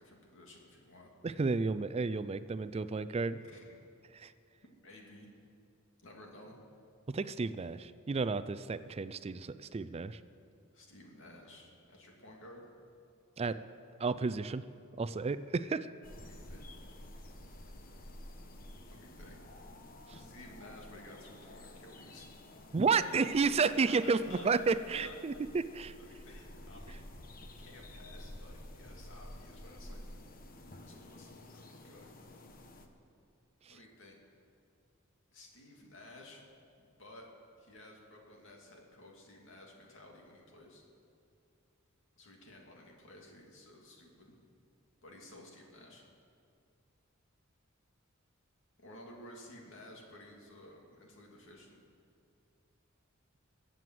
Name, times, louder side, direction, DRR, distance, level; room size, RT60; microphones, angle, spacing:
voice 1, 0.0-1.1 3.4-3.7 4.8-5.3 6.0-6.6 10.7-12.7 16.2-16.7 18.9-19.4 20.1-22.3 22.9-24.5 25.0-25.1 26.0-27.3 27.6-30.0 30.9-32.1 33.7-34.2 35.3-36.4 36.8-37.3 37.6-40.8 42.2-44.3 45.0-46.0 48.8-51.8, left 1 dB, 65° left, 0 dB, 2.7 m, -54 dB
voice 2, 1.2-3.4 4.1-4.3 7.1-10.2 13.4-13.6 14.0-14.6 15.0-15.9 20.1-20.2 22.7-25.9 33.7-33.8, right 4 dB, 30° right, 14 dB, 0.4 m, -32 dB
sound 1, 16.0-32.9, left 1 dB, 45° left, 1.1 m, -51 dB
21.5 x 7.8 x 7.7 m, 2.4 s
head